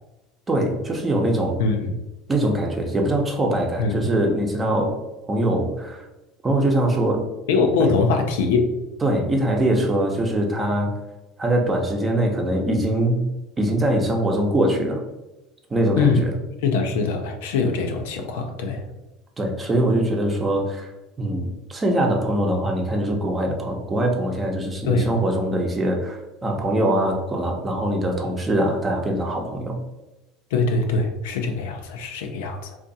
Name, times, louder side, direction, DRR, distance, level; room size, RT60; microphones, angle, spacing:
voice 1, 0.5-1.6 2.3-5.0 5.3-6.1 6.4-7.3 7.8-7.9 9.0-10.9 11.4-13.3 13.6-15.0 15.7-16.3 19.4-20.9 21.2-29.8, right 1 dB, 25° right, 1 dB, 0.8 m, -22 dB
voice 2, 1.6-1.9 3.8-4.0 7.5-8.8 16.0-16.3 16.6-18.8 24.9-25.1 30.5-32.8, left 4 dB, 80° left, 4 dB, 0.5 m, -22 dB
2.6 x 2.4 x 4.0 m, 1.0 s
supercardioid pair, 95°, 0 cm